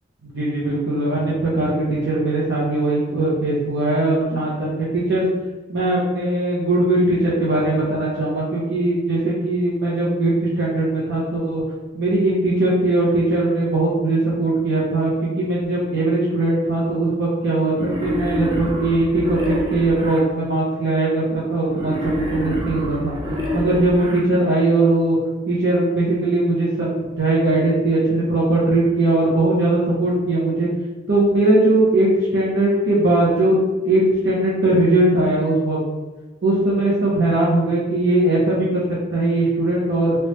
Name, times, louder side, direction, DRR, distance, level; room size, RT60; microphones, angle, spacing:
voice 1, 0.2-5.3 5.7-11.6 11.9-15.1 15.4-21.9 22.3-23.1 23.5-25.2 25.5-30.7 31.1-35.8 36.4-38.8 39.1-40.2, right 2 dB, 60° right, -7 dB, 0.8 m, -20 dB
Wild animals, 17.7-20.2 21.7-24.2, equal, 25° right, 0.6 m, -26 dB
3.1 x 3.0 x 3.1 m, 1.3 s
head